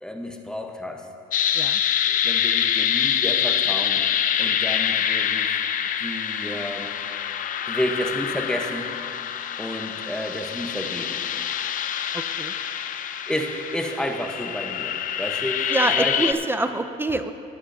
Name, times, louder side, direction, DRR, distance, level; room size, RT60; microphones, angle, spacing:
voice 1, 0.0-1.1 2.1-4.0 4.4-5.6 6.0-6.9 7.7-8.9 9.6-11.2 13.3-16.2, equal, 5° left, 3 dB, 0.9 m, -31 dB
sound 1, 1.3-16.3, left 9 dB, 55° left, 0.5 m, -25 dB
voice 2, 12.1-12.5 15.7-17.3, right 2 dB, 15° right, 9 dB, 0.4 m, -26 dB
19.0 x 9.7 x 2.7 m, 2.7 s
cardioid pair, 110°, 17 cm